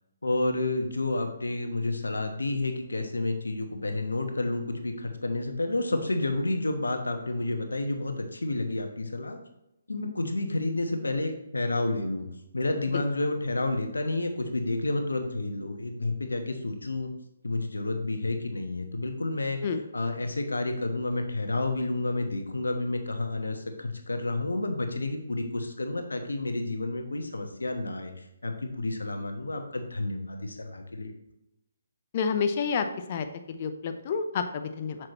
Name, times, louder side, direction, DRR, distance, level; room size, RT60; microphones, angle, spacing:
voice 1, 0.2-9.4 9.9-12.3 12.5-17.1 17.4-31.1, left 2 dB, 75° left, 5 dB, 1.2 m, -30 dB
voice 2, 32.1-35.0, left 6 dB, 40° left, 8 dB, 0.6 m, -29 dB
7.5 x 6.1 x 3.0 m, 0.87 s
figure-of-eight pair, 140°, 0 cm